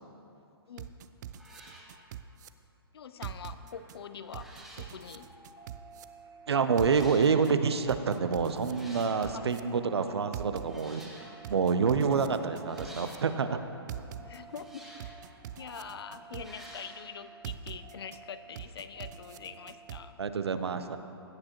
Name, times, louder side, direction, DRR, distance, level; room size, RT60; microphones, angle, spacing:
sound 1, 0.8-1.0 1.3-1.9 3.6-3.9 4.2-4.9 5.9-6.0 6.7-7.3 8.5-9.3 10.6-11.4 12.6-13.3 14.4-15.2 16.3-17.0, equal, ahead, 1.6 m, -51 dB
sound 2, 0.8-2.5 3.2-4.0 4.3-6.0 6.8-7.5 7.9-9.6 10.3-11.1 11.4-13.2 13.9-14.6 15.0-16.7 17.4-18.2 18.6-20.0, right 10 dB, 45° right, 0.4 m, -42 dB
voice 1, 2.9-5.3 9.3-9.5 14.2-14.9 15.6-20.2, left 7 dB, 70° left, 12 dB, 0.6 m, -44 dB
sound 3, 4.8-20.1, right 5 dB, 25° right, 0.9 m, -54 dB
voice 2, 6.5-11.1 11.5-13.6 20.2-21.0, right 5 dB, 90° right, 10 dB, 0.6 m, -27 dB
16.5 x 7.5 x 3.0 m, 2.7 s
hypercardioid pair, 145°, 13 cm